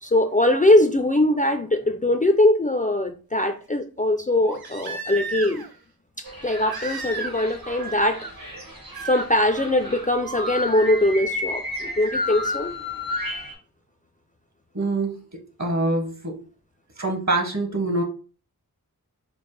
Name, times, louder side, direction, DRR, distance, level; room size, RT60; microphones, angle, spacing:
voice 1, 0.0-5.6 6.2-8.3 9.0-12.7, left 1 dB, 25° left, 6 dB, 0.3 m, -21 dB
Crying sobbing, 1.7-1.8 4.4-5.8 6.7-7.5 7.8-8.3 8.9-9.3 10.9-11.0, right 4 dB, 85° right, 0.7 m, -33 dB
sound 1, 6.2-13.5, left 1 dB, 70° right, 1.4 m, -32 dB
voice 2, 14.7-16.4 17.0-18.0, right 2 dB, 50° right, 3 dB, 1.1 m, -25 dB
5.1 x 2.0 x 3.1 m, 0.37 s
wide cardioid pair, 50°, 36 cm